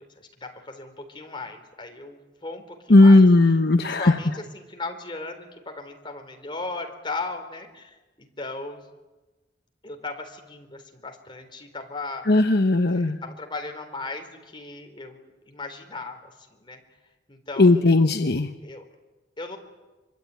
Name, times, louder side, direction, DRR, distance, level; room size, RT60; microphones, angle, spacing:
voice 1, 0.0-3.2 3.8-8.8 9.8-12.3 12.9-16.8 17.3-18.1 18.6-18.8 19.4-19.6, left 3 dB, 25° left, 5 dB, 3.9 m, -37 dB
voice 2, 2.9-4.2 12.3-13.2 17.6-18.5, left 2 dB, 60° left, 8 dB, 1.0 m, -16 dB
25.0 x 24.5 x 9.7 m, 1.1 s
head